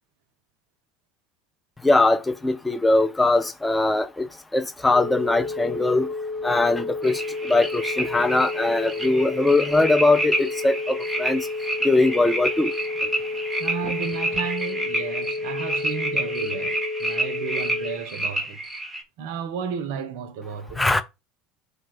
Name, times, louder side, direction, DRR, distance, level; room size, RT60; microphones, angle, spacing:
voice 1, 1.8-4.3 4.5-6.1 6.4-11.5 11.8-12.7 13.8-13.9 20.8-21.0, left 2 dB, 10° left, 0.4 m, -21 dB
sound 1, 4.9-18.0, left 3 dB, 35° left, 1.0 m, -31 dB
sound 2, 7.0-19.0, right 1 dB, 5° right, 0.8 m, -30 dB
voice 2, 13.6-18.6 19.2-20.8, right 7 dB, 60° right, 0.5 m, -33 dB
2.4 x 2.2 x 3.9 m
figure-of-eight pair, 70°, 0 cm